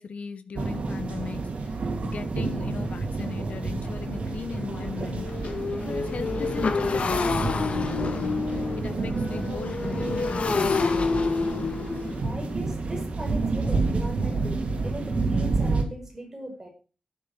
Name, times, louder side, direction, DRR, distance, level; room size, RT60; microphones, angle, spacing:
voice 1, 0.0-5.6 5.8-10.8, left 5 dB, 85° left, 1.2 m, -37 dB
sound 1, 0.5-15.8, right 3 dB, 70° right, 3.2 m, -29 dB
Motorcycle, 2.8-2.9 3.4-3.6 3.8-15.4, left 4 dB, 70° left, 2.1 m, -30 dB
voice 2, 12.2-16.7, right 1 dB, 20° right, 5.9 m, -38 dB
12.0 x 10.5 x 6.3 m
wide cardioid pair, 145°, 2 cm